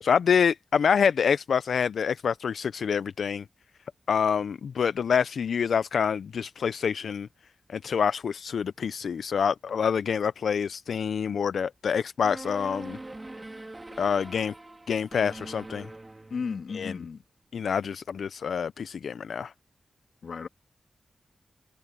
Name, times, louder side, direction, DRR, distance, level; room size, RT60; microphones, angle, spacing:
voice 1, 0.0-3.4 4.1-7.3 7.7-13.0 14.0-14.5 14.9-15.9 16.7-17.0 17.5-19.5, left 7 dB, 85° left, 0.3 m, -26 dB
sound 1, 12.2-16.9, right 2 dB, 20° right, 2.7 m, -43 dB
voice 2, 16.3-17.2 20.2-20.5, left 5 dB, 70° left, 2.8 m, -34 dB
wide cardioid pair, 135°, 0 cm